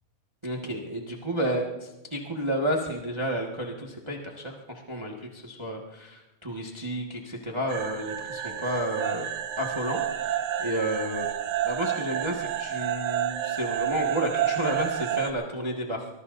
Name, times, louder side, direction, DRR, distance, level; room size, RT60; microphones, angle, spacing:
voice 1, 0.4-9.3 9.6-11.3 11.6-16.1, equal, 30° right, -1 dB, 0.5 m, -31 dB
sound 1, 7.7-15.3, right 10 dB, 70° right, 1.6 m, -30 dB
24.5 x 21.5 x 2.7 m, 1.0 s
omnidirectional pair, 3.9 m